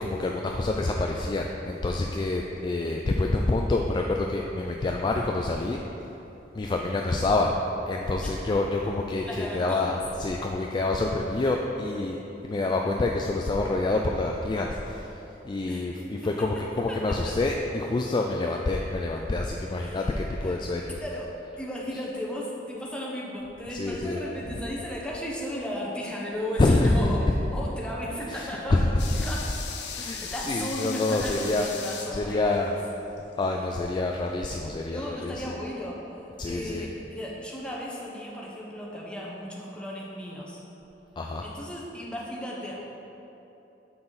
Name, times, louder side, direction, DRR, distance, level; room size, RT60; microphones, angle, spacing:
voice 1, 0.0-5.8 6.5-7.5 7.9-12.2 12.4-15.1 15.4-21.0 23.7-24.2 26.6-27.2 28.3-29.0 29.9-31.7 32.1-32.7 33.4-35.5 36.4-36.9 41.2-41.4, left 2 dB, 25° left, 1 dB, 0.3 m, -27 dB
voice 2, 9.2-9.8 15.7-15.9 16.5-17.2 19.8-20.2 20.4-20.6 21.0-21.3 21.6-29.7 30.3-32.7 34.9-40.6 41.4-42.7, equal, 5° left, -4 dB, 1.0 m, -35 dB
sound 1, 29.0-34.0 34.3-34.4, left 6 dB, 85° left, 0.7 m, -38 dB
6.9 x 5.7 x 4.0 m, 3.0 s
head